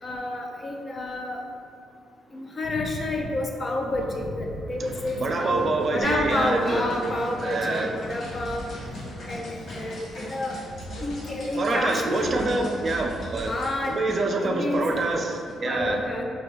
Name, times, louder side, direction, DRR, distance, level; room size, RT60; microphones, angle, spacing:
voice 1, 0.0-1.4 2.3-8.7 9.3-10.6 11.0-12.4 13.5-14.0 14.4-14.8 15.1-15.2 15.7-16.2, left 2 dB, 30° left, 1 dB, 0.5 m, -29 dB
sound 1, 4.8-13.9, equal, 60° left, 1.0 m, -39 dB
voice 2, 5.2-6.8 7.4-7.9 11.6-13.5 13.9-16.0, right 3 dB, 45° right, 2 dB, 0.4 m, -26 dB
sound 2, 6.0-14.4 14.7-15.5, equal, 85° left, 0.7 m, -41 dB
4.9 x 2.3 x 3.2 m, 2.2 s
cardioid pair, 90°, 0 cm